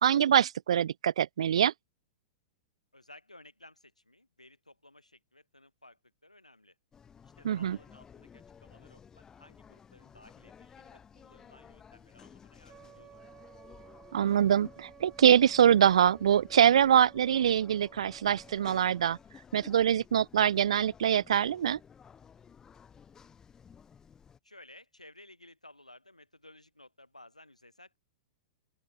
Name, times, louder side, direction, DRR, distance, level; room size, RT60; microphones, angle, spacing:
voice 1, 0.0-1.7 7.4-7.8 14.1-19.2 19.5-21.8, right 9 dB, 60° right, 0.5 m, -24 dB
voice 2, 2.9-6.8 7.2-13.2 24.4-28.0, left 1 dB, 85° left, 6.0 m, -57 dB
sound 1, 6.9-24.4, left 7 dB, 15° left, 3.0 m, -55 dB
Wind instrument woodwind instrument, 12.7-19.2, right 9 dB, 20° right, 4.8 m, -55 dB
open air
figure-of-eight pair, 105°, 4 cm